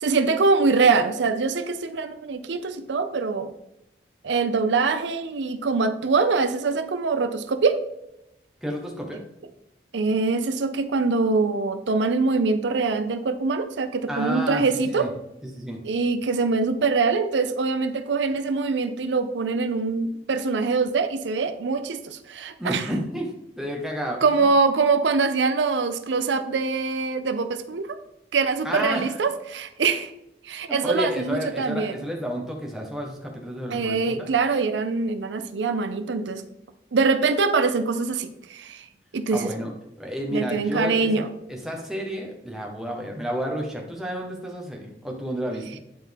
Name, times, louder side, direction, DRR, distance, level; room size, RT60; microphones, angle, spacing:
voice 1, 0.0-3.5 4.2-7.8 9.9-15.1 15.8-22.9 24.2-28.0 28.3-30.1 30.4-32.0 33.7-36.4 36.9-38.9 39.1-39.5 40.3-41.3, right 4 dB, 85° right, 9 dB, 0.5 m, -23 dB
voice 2, 8.6-9.2 14.1-15.1 15.4-15.8 22.6-23.3 23.6-24.5 28.6-29.1 30.8-34.3 39.3-39.7 40.0-41.1 41.5-45.7, equal, ahead, 0 dB, 1.2 m, -30 dB
9.4 x 4.3 x 3.5 m, 0.86 s
head